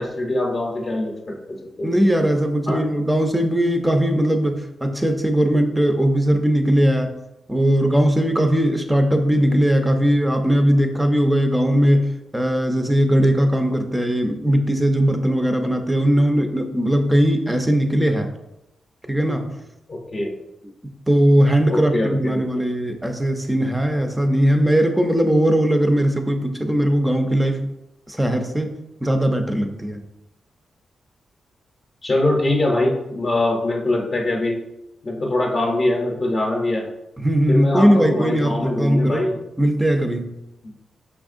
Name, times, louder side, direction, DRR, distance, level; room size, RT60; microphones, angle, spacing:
voice 1, 0.0-1.3 1.8-1.9 2.7-2.9 19.9-20.3 21.7-22.6 32.0-34.6 35.0-36.9 37.5-39.4 40.6-40.7, left 1 dB, 35° left, -1 dB, 0.7 m, -23 dB
voice 2, 1.8-7.1 7.5-12.1 12.3-18.3 19.1-19.5 21.1-27.6 28.1-28.7 29.0-30.0 37.2-39.3 39.6-40.3, equal, 5° right, 5 dB, 0.5 m, -19 dB
5.6 x 3.5 x 2.5 m, 0.90 s
wide cardioid pair, 125°, 0 cm